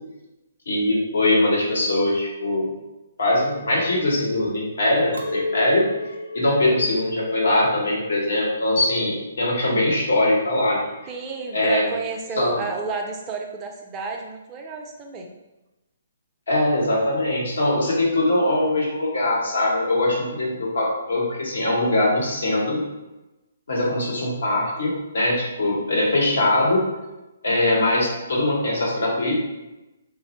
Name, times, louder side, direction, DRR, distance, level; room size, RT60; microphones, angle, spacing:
voice 1, 0.7-2.6 3.2-5.9 6.3-10.8 11.5-11.9 12.4-12.6 16.5-22.8 23.7-26.8 27.4-29.4, left 1 dB, 70° left, -3 dB, 0.9 m, -21 dB
Chink clink, 5.1-10.5, left 2 dB, 80° right, 0.4 m, -34 dB
voice 2, 11.1-15.3, right 4 dB, 20° right, 2 dB, 0.4 m, -31 dB
3.1 x 2.0 x 2.9 m, 1.0 s
figure-of-eight pair, 135°, 0 cm